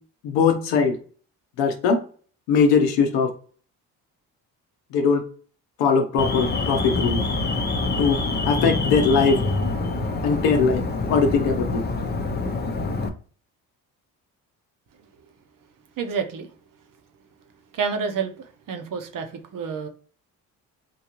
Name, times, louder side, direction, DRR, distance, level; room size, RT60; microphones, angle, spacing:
voice 1, 0.2-0.9 1.6-2.0 2.5-3.3 4.9-5.2 5.8-7.2 8.0-8.2 8.5-9.4 10.2-10.8 11.1-11.7, left 5 dB, 85° left, 0.8 m, -20 dB
Alarm, 6.2-13.1, left 3 dB, 25° left, 0.6 m, -26 dB
voice 2, 16.0-16.5 17.7-19.9, right 6 dB, 50° right, 0.8 m, -29 dB
3.7 x 2.7 x 2.9 m
supercardioid pair, 60°, 42 cm